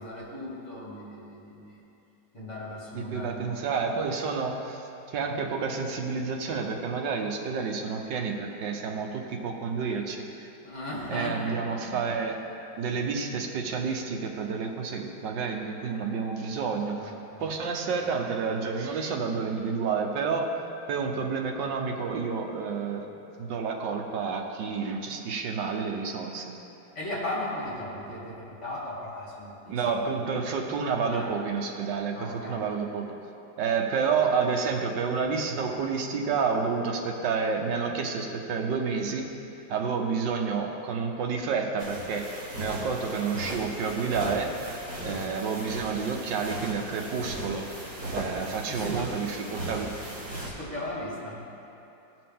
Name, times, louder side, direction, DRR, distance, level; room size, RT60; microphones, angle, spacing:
voice 1, 0.0-1.8 2.3-3.6 10.6-12.0 16.9-17.5 26.9-28.3 28.6-29.7 31.1-31.3 32.1-32.6 45.0-45.2 48.7-49.1 50.3-51.4, left 1 dB, 40° left, -7 dB, 2.7 m, -37 dB
voice 2, 2.9-10.5 11.1-12.4 12.8-17.1 17.4-20.6 20.9-23.1 23.4-26.4 29.7-33.1 33.6-39.3 39.7-42.3 42.6-44.6 45.0-47.6 48.1-49.9, right 5 dB, 80° right, 3 dB, 1.5 m, -29 dB
sound 1, 41.8-50.5, right 1 dB, 50° right, 2.0 m, -37 dB
16.5 x 5.8 x 3.6 m, 2.9 s
omnidirectional pair, 1.9 m